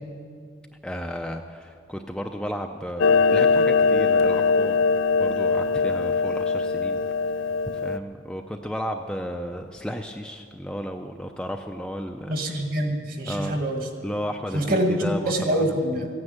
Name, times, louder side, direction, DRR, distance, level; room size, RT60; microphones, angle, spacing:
voice 1, 0.8-4.8 5.2-7.0 7.7-12.3 13.3-13.6 14.0-15.8, equal, 5° left, 4 dB, 0.5 m, -33 dB
Clock, 3.0-8.0, left 4 dB, 85° left, 0.4 m, -21 dB
voice 2, 12.3-13.8 14.5-16.1, right 1 dB, 45° right, 4 dB, 1.7 m, -25 dB
15.0 x 9.8 x 8.8 m, 2.1 s
head